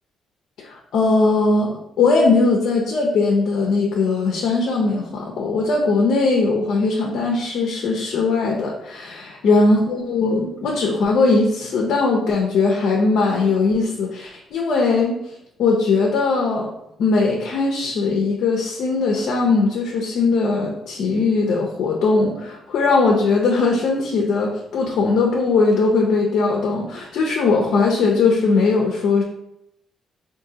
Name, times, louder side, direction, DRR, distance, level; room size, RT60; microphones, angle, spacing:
voice 1, 0.6-15.2 15.6-16.7 17.0-29.2, left 3 dB, 75° left, 0 dB, 0.5 m, -19 dB
3.7 x 2.6 x 2.8 m, 0.80 s
cardioid pair, 90°, 0 cm